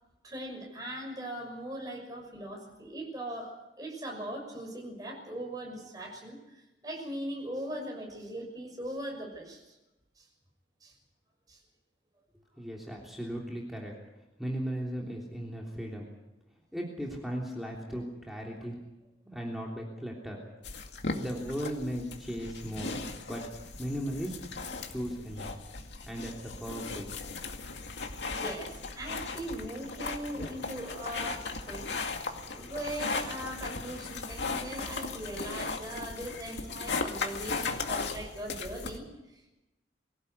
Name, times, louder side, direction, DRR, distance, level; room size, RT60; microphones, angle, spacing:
voice 1, 0.2-9.6 10.2-10.3 10.8-10.9 11.5-11.6 28.3-31.9 32.5-39.1 39.3-39.6, right 1 dB, 20° right, 1 dB, 6.4 m, -40 dB
voice 2, 12.6-13.9 14.4-16.1 16.7-18.8 19.2-20.4 21.1-23.0 23.3-23.4 23.8-24.4 24.9-25.6 26.1-27.1 27.4-27.5, equal, ahead, -2 dB, 3.3 m, -37 dB
sound 1, 20.6-39.0, left 3 dB, 85° left, 2.2 m, -37 dB
24.0 x 16.0 x 8.2 m, 0.99 s
head